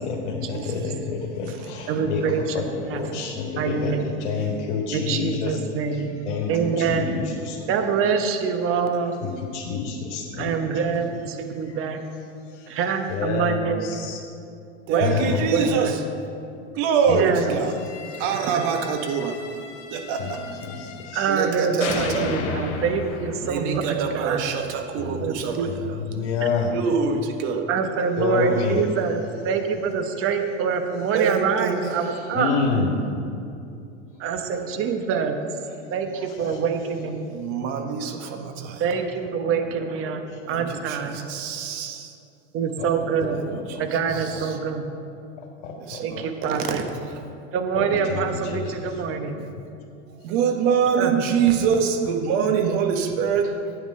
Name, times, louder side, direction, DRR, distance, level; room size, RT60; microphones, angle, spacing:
voice 1, 0.0-5.6 5.9-7.6 9.2-10.6 11.5-11.8 12.5-12.8 13.1-14.2 15.0-15.5 17.1-17.2 20.2-20.3 20.6-21.3 25.0-26.7 28.2-28.8 32.3-33.2 34.5-34.8 36.3-36.6 39.2-39.3 39.6-40.4 41.2-41.3 41.6-41.7 42.8-42.9 43.2-44.4 45.4-46.3 47.7-49.0 49.5-49.6, left 5 dB, 70° left, -1 dB, 1.9 m, -29 dB
voice 2, 1.9-3.0 3.6-4.1 4.9-6.2 6.5-7.2 7.7-9.3 10.4-12.0 12.7-14.1 14.9-15.2 15.5-15.9 17.1-17.5 18.5-18.6 21.1-24.4 25.2-25.7 27.7-32.5 34.2-35.4 35.9-37.3 38.8-40.2 40.5-41.3 42.5-43.4 43.8-45.0 46.0-46.9 47.5-49.4 51.0-51.1, right 6 dB, 40° right, 6 dB, 1.2 m, -25 dB
voice 3, 14.9-16.0 16.7-17.8 18.2-19.4 19.9-20.7 21.3-22.4 23.4-25.9 26.7-27.7 31.1-31.9 37.2-38.9 40.4-42.1 43.7-43.8 44.1-44.6 45.8-46.8 50.2-53.6, right 6 dB, 55° right, 5 dB, 1.5 m, -25 dB
sound 1, 17.7-21.5 21.8-24.8, left 5 dB, 45° left, 1.3 m, -35 dB
11.0 x 8.7 x 5.7 m, 2.6 s
hypercardioid pair, 110°, 34 cm